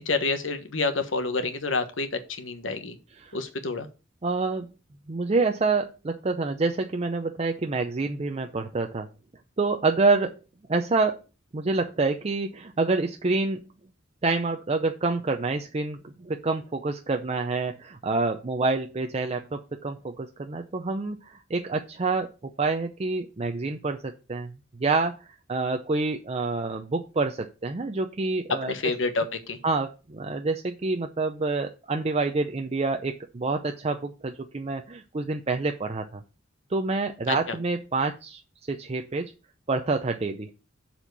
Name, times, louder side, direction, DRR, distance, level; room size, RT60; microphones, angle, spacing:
voice 1, 0.0-3.0 3.3-3.9 28.6-29.6 37.3-37.6, left 3 dB, 75° left, 9 dB, 1.3 m, -28 dB
voice 2, 4.2-4.7 5.1-9.1 9.6-10.3 10.7-11.2 11.5-13.6 14.2-24.5 24.8-28.7 29.6-36.2 36.7-38.4 38.7-39.3 39.7-40.5, right 3 dB, 30° right, 5 dB, 0.6 m, -27 dB
7.2 x 4.3 x 6.7 m, 0.32 s
head